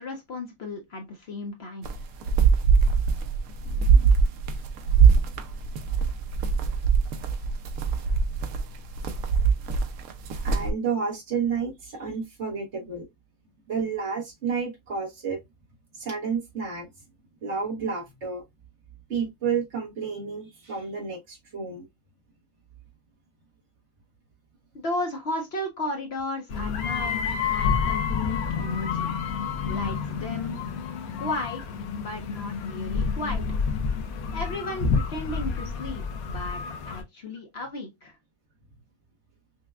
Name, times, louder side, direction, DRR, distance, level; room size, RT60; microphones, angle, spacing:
voice 1, 0.0-1.9 24.8-29.1 29.6-30.6 31.2-33.4 34.3-38.2, left 2 dB, 55° left, 0.8 m, -34 dB
sound 1, 1.8-10.7, right 6 dB, 75° right, 1.1 m, -22 dB
voice 2, 3.6-4.2 5.1-5.4 10.4-13.1 13.7-15.4 15.9-16.9 17.4-18.4 19.1-21.9, right 6 dB, 55° right, 1.2 m, -31 dB
sound 2, 26.5-37.0, left 5 dB, 75° left, 1.2 m, -29 dB
5.7 x 2.2 x 2.3 m
omnidirectional pair, 1.6 m